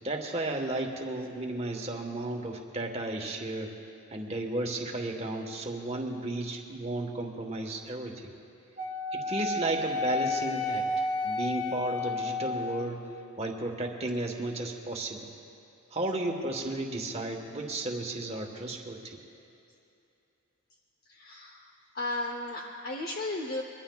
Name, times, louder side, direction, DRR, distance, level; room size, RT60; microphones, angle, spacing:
voice 1, 0.0-3.7 4.1-8.3 9.1-10.9 11.2-13.0 13.4-15.3 15.9-19.2, right 2 dB, 30° right, 2 dB, 1.2 m, -33 dB
Wind instrument woodwind instrument, 8.8-12.9, left 3 dB, 85° left, 1.5 m, -31 dB
voice 2, 21.1-23.6, left 2 dB, 40° left, 1 dB, 0.8 m, -35 dB
23.0 x 21.5 x 2.3 m, 2.7 s
head